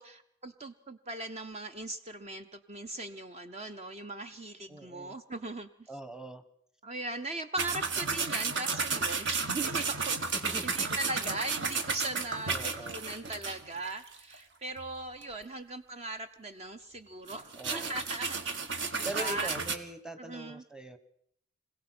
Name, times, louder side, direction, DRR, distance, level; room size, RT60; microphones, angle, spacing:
voice 1, 0.0-5.9 6.8-10.2 10.6-18.6 18.9-19.5 20.2-20.6, right 2 dB, 30° right, 9 dB, 0.7 m, -39 dB
voice 2, 4.7-5.2 5.9-6.4 10.3-11.3 12.5-13.0 17.6-18.0 19.0-21.0, right 2 dB, 5° right, 11 dB, 1.2 m, -42 dB
sound 1, 7.6-14.3 14.8-14.9 15.2-15.3 17.3-19.8, right 4 dB, 60° right, 1.7 m, -33 dB
25.5 x 17.0 x 6.1 m, 0.68 s
head